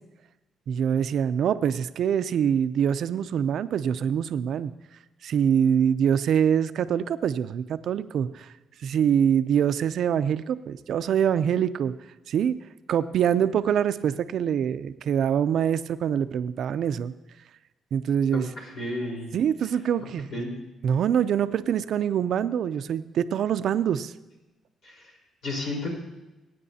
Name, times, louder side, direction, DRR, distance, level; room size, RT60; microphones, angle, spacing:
voice 1, 0.7-4.7 5.2-8.5 8.8-11.9 12.3-12.5 12.9-17.1 17.9-18.5 19.3-20.3 20.8-24.1, right 8 dB, 70° right, 12 dB, 0.5 m, -24 dB
voice 2, 18.3-19.3 20.3-20.5 24.8-25.1 25.4-25.9, left 2 dB, 70° left, -2 dB, 4.3 m, -32 dB
22.0 x 9.3 x 2.8 m, 1.1 s
cardioid pair, 90°, 0 cm